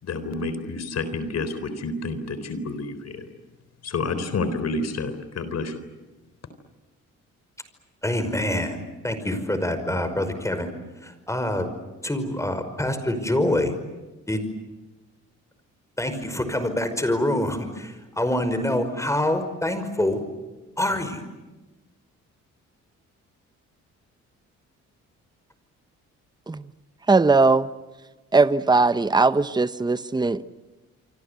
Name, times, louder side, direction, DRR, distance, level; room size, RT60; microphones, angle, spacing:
voice 1, 0.0-3.3 3.8-5.7, left 3 dB, 55° left, 11 dB, 3.9 m, -29 dB
voice 2, 8.0-8.8 9.0-10.7 11.0-11.7 12.0-13.7 14.3-14.4 16.0-20.2 20.8-21.2, left 1 dB, 10° left, 9 dB, 5.4 m, -25 dB
voice 3, 27.1-27.7 28.3-30.5, right 3 dB, 15° right, 13 dB, 1.0 m, -19 dB
28.5 x 24.5 x 8.3 m, 1.1 s
cardioid pair, 90°, 30 cm